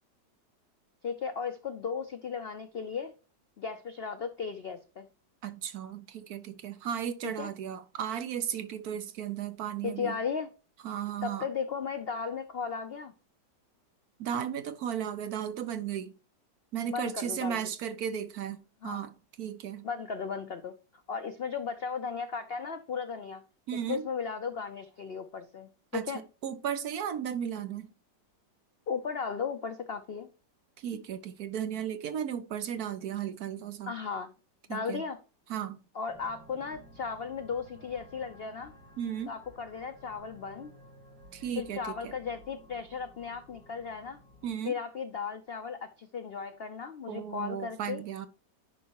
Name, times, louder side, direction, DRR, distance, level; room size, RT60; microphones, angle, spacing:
voice 1, 1.0-3.1 3.6-5.1 7.2-7.5 9.8-10.5 11.2-13.1 16.9-17.6 18.8-19.0 19.8-20.7 21.1-23.4 23.9-26.2 28.9-30.3 33.9-34.3 34.7-35.2 35.9-38.7 39.3-40.7 41.6-44.2 44.6-48.0, left 6 dB, 80° left, 0.5 m, -36 dB
voice 2, 5.4-10.2 10.8-11.5 14.2-16.1 16.7-19.9 23.7-24.1 25.9-26.1 26.4-27.9 30.8-34.0 34.7-35.0 35.5-35.8 39.0-39.3 41.3-42.1 44.4-44.7 47.1-48.3, right 9 dB, 65° right, 1.1 m, -35 dB
sound 1, 36.1-44.5, equal, 5° right, 3.4 m, -55 dB
10.0 x 5.4 x 2.9 m
omnidirectional pair, 1.9 m